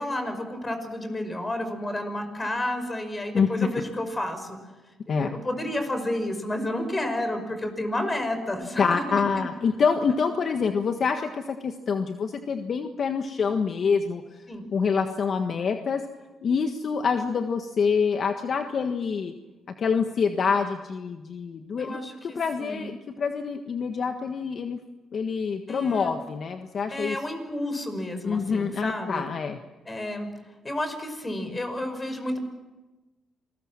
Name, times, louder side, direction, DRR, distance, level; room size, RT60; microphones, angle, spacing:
voice 1, 0.0-4.6 5.1-9.0 9.4-9.5 14.5-14.7 21.8-22.9 25.7-26.2 26.9-29.2 29.9-30.3 30.6-32.4, left 1 dB, 20° left, 7 dB, 5.5 m, -31 dB
voice 2, 8.8-14.2 14.7-16.0 16.4-19.3 19.8-24.8 25.1-27.2 28.2-29.6, left 5 dB, 50° left, 6 dB, 1.5 m, -26 dB
27.5 x 20.5 x 7.5 m, 1.1 s
cardioid pair, 90°, 0 cm